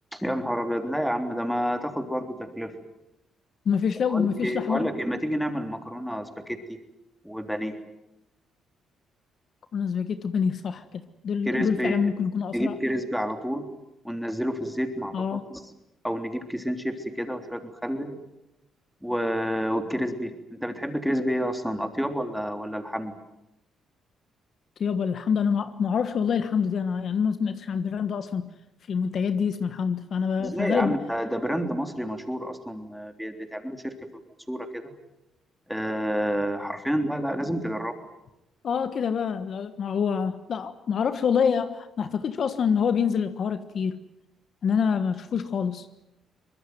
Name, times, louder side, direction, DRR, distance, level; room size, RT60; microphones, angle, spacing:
voice 1, 0.1-2.7 4.1-6.8 7.2-7.8 11.4-12.1 12.5-13.7 14.0-15.2 15.5-15.6 16.0-18.2 19.0-23.1 30.4-33.9 34.5-34.9 35.7-37.9, equal, ahead, 6 dB, 3.5 m, -29 dB
voice 2, 3.6-4.9 9.7-12.8 15.1-15.5 24.8-28.5 28.9-31.0 38.6-44.0 44.6-45.9, left 6 dB, 55° left, 11 dB, 1.4 m, -26 dB
24.0 x 21.0 x 9.4 m, 0.89 s
cardioid pair, 90°, 0 cm